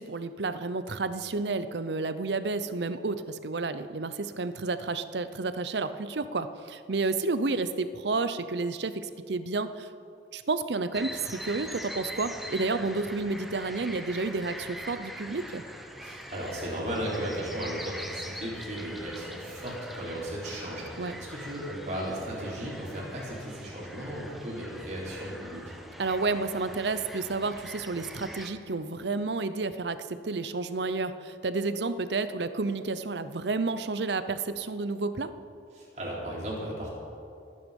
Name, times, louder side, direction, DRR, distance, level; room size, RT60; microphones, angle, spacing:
voice 1, 0.0-9.9 10.3-15.6 21.0-21.2 26.0-35.3, right 3 dB, 75° right, 12 dB, 0.7 m, -31 dB
sound 1, 10.9-28.5, equal, ahead, 1.1 m, -42 dB
voice 2, 16.0-25.7 35.7-36.9, equal, 40° right, -5 dB, 4.5 m, -36 dB
26.0 x 9.5 x 5.4 m, 2.6 s
head